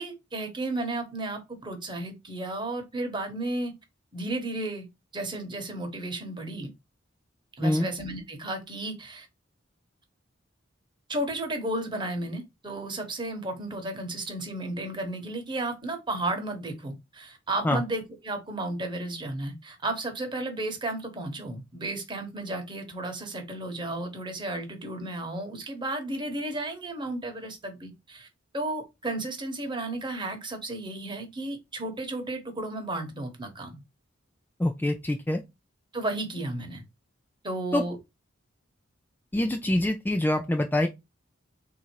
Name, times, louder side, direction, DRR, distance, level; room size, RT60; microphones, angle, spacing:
voice 1, 0.0-3.7 4.1-4.9 5.1-6.7 7.6-9.3 11.1-28.3 28.5-33.8 35.9-36.8 37.4-38.0, right 2 dB, 25° right, 1.1 m, -33 dB
voice 2, 34.6-35.4 37.7-37.8 39.3-40.9, left 1 dB, 10° left, 0.3 m, -25 dB
3.7 x 2.7 x 4.5 m
head